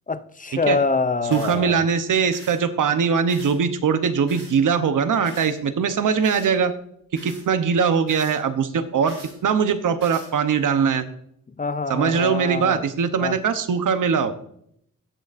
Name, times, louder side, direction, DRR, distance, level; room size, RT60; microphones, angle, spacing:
voice 1, 0.1-1.9 11.6-12.8 13.2-13.4, left 4 dB, 25° left, 12 dB, 0.5 m, -25 dB
sound 1, 1.3-1.6 2.3-2.6 3.3-3.6 4.3-4.5 5.2-5.5 6.2-6.5 7.1-7.4 8.1-8.4 9.1-9.3 10.0-10.3, right 2 dB, 40° right, 4.1 m, -43 dB
voice 2, 1.3-6.7 7.1-9.2 9.4-11.1 11.9-14.3, right 6 dB, 85° right, 10 dB, 0.9 m, -21 dB
17.5 x 6.5 x 2.6 m, 0.69 s
wide cardioid pair, 135°, 31 cm